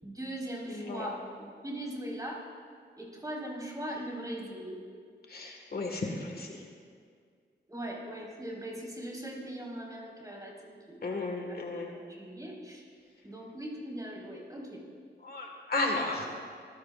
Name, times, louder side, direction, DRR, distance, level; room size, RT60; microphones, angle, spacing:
voice 1, 0.0-2.5 3.0-4.8 7.7-12.8 13.2-14.8 16.0-16.3, right 1 dB, 20° right, -4 dB, 4.7 m, -40 dB
voice 2, 0.7-1.0 5.3-6.6 11.0-11.9 15.2-16.3, left 2 dB, 55° left, 1 dB, 1.8 m, -34 dB
26.0 x 15.5 x 2.5 m, 2.1 s
wide cardioid pair, 85°, 19 cm